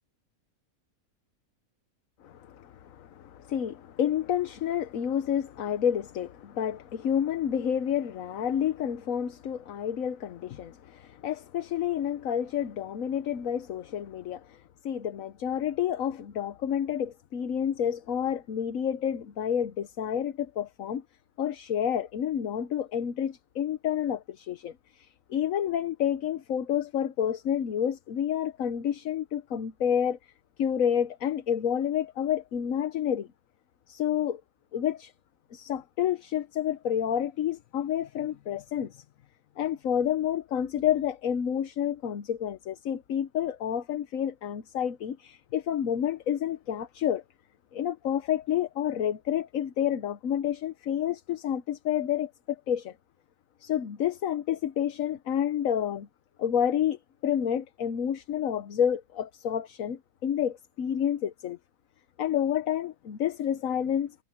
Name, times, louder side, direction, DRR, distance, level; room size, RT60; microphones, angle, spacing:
voice 1, 2.2-21.0 21.4-30.2 30.6-33.3 33.9-34.4 34.7-35.1 35.5-39.0 39.6-47.2 47.7-52.9 53.6-56.1 56.4-61.6 62.2-64.1, left 9 dB, 70° left, 1.3 m, -29 dB
omnidirectional pair, 1.5 m